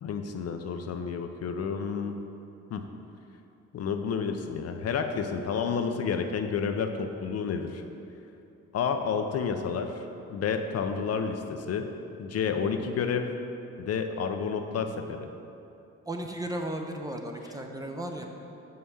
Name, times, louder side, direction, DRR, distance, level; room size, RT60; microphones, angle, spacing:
voice 1, 0.0-2.2 2.7-2.9 3.7-7.8 8.7-11.9 12.2-13.3 13.8-15.3, left 6 dB, 55° left, 6 dB, 0.6 m, -30 dB
voice 2, 16.0-18.2, right 1 dB, 10° right, 3 dB, 0.7 m, -35 dB
5.7 x 5.6 x 6.4 m, 2.8 s
cardioid pair, 90°, 30 cm